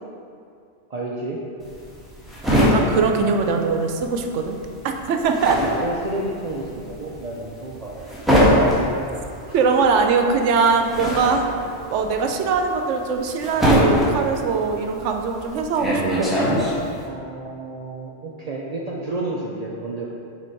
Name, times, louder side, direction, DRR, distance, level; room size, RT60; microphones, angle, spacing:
voice 1, 0.9-1.4 5.6-8.8 9.5-9.6 17.0-20.1, right 2 dB, 50° right, -3 dB, 0.5 m, -31 dB
sound 1, 1.6-4.2 4.4-17.0, equal, ahead, 1.2 m, -22 dB
voice 2, 2.6-4.6 4.8-5.6 9.5-11.5 11.9-16.4, right 5 dB, 85° right, 4 dB, 0.9 m, -21 dB
6.1 x 4.0 x 4.5 m, 2.5 s
omnidirectional pair, 1.2 m